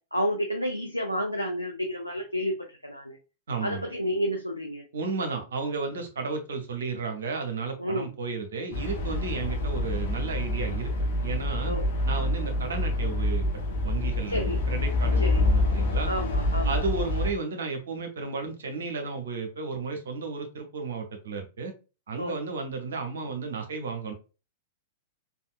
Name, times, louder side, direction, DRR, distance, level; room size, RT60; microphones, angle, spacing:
voice 1, 0.1-2.5 2.8-3.2 3.6-4.8 7.8-8.1 11.7-11.9 14.3-14.6 15.2-15.4 16.0-16.9 22.2-22.4, equal, 90° left, 2 dB, 0.4 m, -30 dB
voice 2, 3.5-3.8 4.9-10.9 11.2-11.7 12.0-13.5 13.8-16.1 16.6-21.7 22.1-24.1, right 4 dB, 65° right, 5 dB, 0.7 m, -33 dB
sound 1, 8.7-17.3, left 1 dB, 50° left, 0.7 m, -27 dB
3.4 x 2.3 x 2.3 m, 0.32 s
figure-of-eight pair, 100°, 0 cm